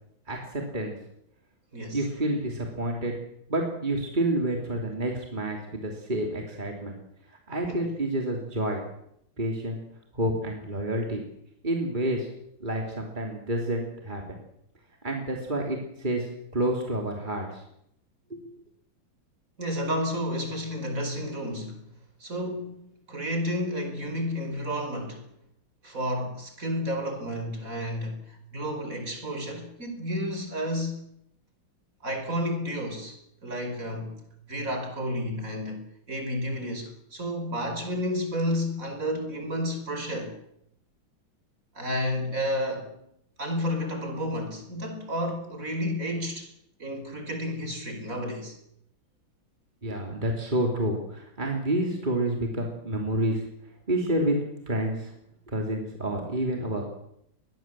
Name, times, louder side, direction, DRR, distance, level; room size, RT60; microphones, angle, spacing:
voice 1, 0.3-1.0 1.9-3.1 3.5-7.0 7.5-8.8 9.4-9.8 10.1-11.2 11.6-12.3 12.6-14.4 15.0-17.6 18.3-18.4 49.8-53.4 53.9-54.4 54.7-55.1 55.5-56.8, right 1 dB, 20° right, 3.3 m, -29 dB
voice 2, 1.7-2.0 7.7-7.9 19.6-21.8 22.2-22.8 23.1-25.2 25.8-31.0 32.0-34.2 34.5-35.8 36.1-40.4 41.8-42.9 43.4-46.5 46.8-48.6, equal, 40° right, 5.3 m, -31 dB
23.0 x 21.0 x 7.6 m
omnidirectional pair, 2.2 m